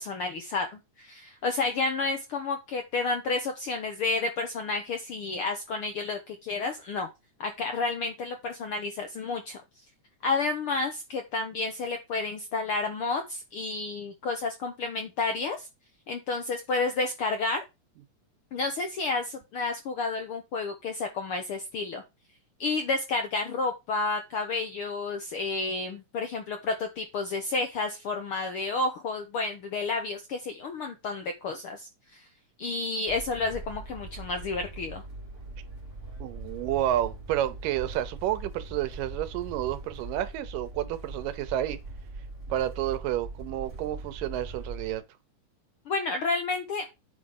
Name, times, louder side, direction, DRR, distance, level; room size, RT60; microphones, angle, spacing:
voice 1, 0.0-7.1 7.4-9.6 10.2-15.7 16.1-17.6 18.5-22.0 22.6-32.2 32.6-35.0 45.9-46.8, left 3 dB, 70° left, 1.3 m, -31 dB
sound 1, 33.1-45.0, right 2 dB, 20° right, 3.2 m, -41 dB
voice 2, 36.2-41.8 42.5-45.0, right 12 dB, 90° right, 2.5 m, -30 dB
8.5 x 4.9 x 5.5 m
omnidirectional pair, 3.7 m